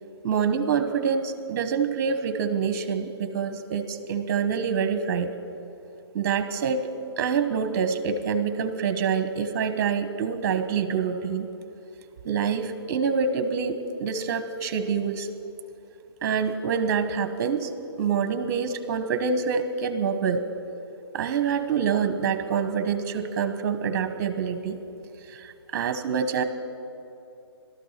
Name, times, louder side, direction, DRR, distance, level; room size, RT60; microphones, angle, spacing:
voice 1, 0.2-5.3 6.1-6.9 7.2-11.5 12.2-15.3 16.2-17.7 18.0-20.4 21.1-24.8 25.3-26.4, right 6 dB, 40° right, 10 dB, 1.3 m, -26 dB
17.5 x 13.0 x 5.9 m, 2.7 s
hypercardioid pair, 145°, 14 cm